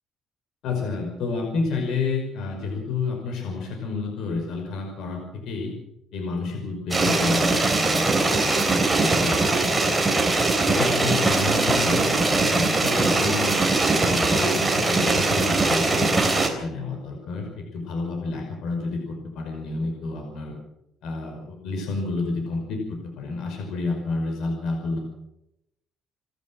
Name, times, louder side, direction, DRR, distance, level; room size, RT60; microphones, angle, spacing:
voice 1, 0.6-5.7 6.1-10.0 10.7-13.6 14.0-20.5 21.0-25.0, left 3 dB, 70° left, 2 dB, 5.5 m, -30 dB
sound 1, 6.9-16.5, right 3 dB, 10° right, 3.7 m, -21 dB
29.0 x 12.5 x 7.7 m, 0.84 s
cardioid pair, 155°, 0 cm